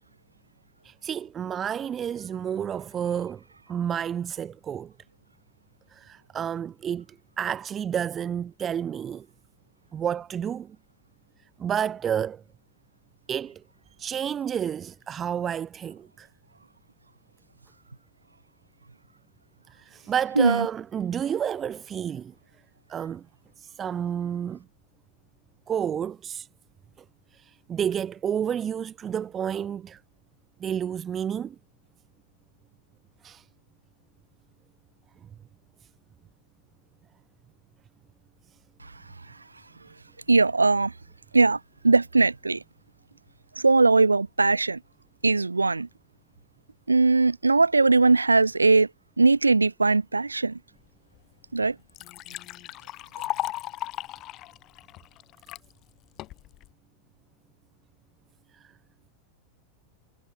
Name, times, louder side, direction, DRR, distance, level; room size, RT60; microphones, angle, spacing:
voice 1, 0.8-4.9 5.9-7.1 7.4-9.3 9.9-10.8 11.6-12.4 13.3-13.6 14.0-16.3 19.7-22.3 22.9-23.3 23.6-24.6 25.7-26.5 27.3-30.0 30.6-31.6 33.2-33.4 58.5-58.7, right 8 dB, 25° right, 0.6 m, -30 dB
voice 2, 20.4-20.7 40.3-40.9 41.3-41.6 41.8-42.6 43.6-44.8 45.2-45.9 46.9-48.9 49.2-50.6 51.5-51.8, right 3 dB, 80° right, 0.6 m, -20 dB
Liquid, 51.1-51.2 51.6-55.6 56.2-56.7, left 16 dB, 35° left, 4.1 m, -36 dB
figure-of-eight pair, 90°, 0 cm